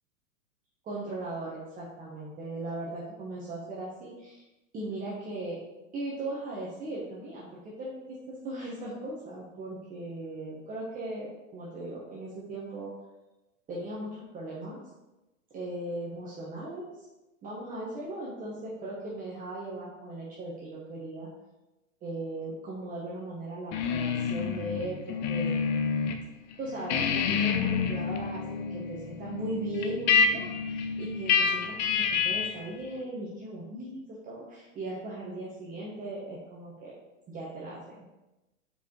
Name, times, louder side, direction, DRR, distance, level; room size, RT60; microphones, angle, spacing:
voice 1, 0.8-4.4 4.7-5.6 5.9-12.9 13.7-14.8 15.5-17.1 17.4-21.3 22.0-25.6 26.6-36.9 37.3-38.0, right 1 dB, 20° right, -6 dB, 1.2 m, -38 dB
sound 1, 23.7-26.2 26.5-32.7, left 6 dB, 35° left, 0.6 m, -28 dB
5.1 x 4.8 x 4.6 m, 1.0 s
hypercardioid pair, 125°, 39 cm